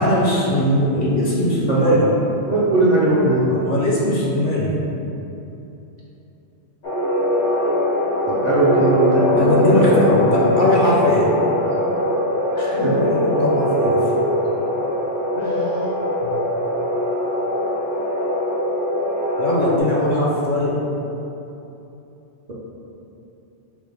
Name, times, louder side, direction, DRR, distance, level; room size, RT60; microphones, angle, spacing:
voice 1, 0.0-2.0 3.4-4.8 9.4-11.3 12.6-14.0 16.2-16.4 19.4-20.8, left 1 dB, 55° left, -4 dB, 0.7 m, -20 dB
voice 2, 1.7-2.1 2.5-3.4 8.3-10.5 12.5-12.9 15.3-15.7, right 2 dB, 50° right, -7 dB, 0.5 m, -19 dB
sound 1, 6.8-19.8, left 1 dB, 75° left, 1.0 m, -21 dB
6.0 x 2.0 x 3.3 m, 2.9 s
omnidirectional pair, 1.2 m